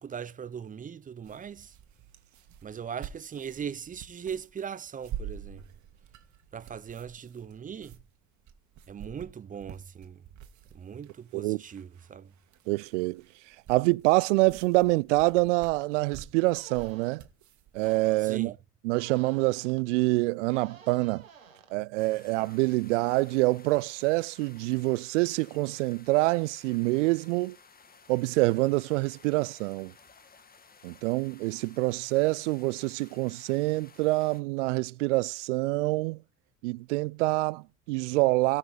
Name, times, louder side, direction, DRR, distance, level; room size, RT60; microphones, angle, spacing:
voice 1, 0.0-1.7 2.6-5.6 6.5-8.0 8.9-10.2 10.7-12.3 18.2-18.6, right 7 dB, 20° right, 0.7 m, -39 dB
sound 1, 1.2-18.0, right 9 dB, 45° right, 1.8 m, -47 dB
voice 2, 12.7-13.2 13.7-17.2 17.7-18.5 18.8-21.2 21.7-27.6 28.1-29.9 30.8-36.2 36.6-38.6, right 23 dB, 65° right, 0.5 m, -26 dB
sound 2, 15.8-15.9 16.5-17.1 17.8-18.3 18.9-19.8 20.5-21.7, right 7 dB, 90° right, 1.8 m, -51 dB
sound 3, 22.0-34.4, left 5 dB, 25° left, 1.5 m, -56 dB
17.5 x 6.2 x 4.9 m
hypercardioid pair, 70°, 39 cm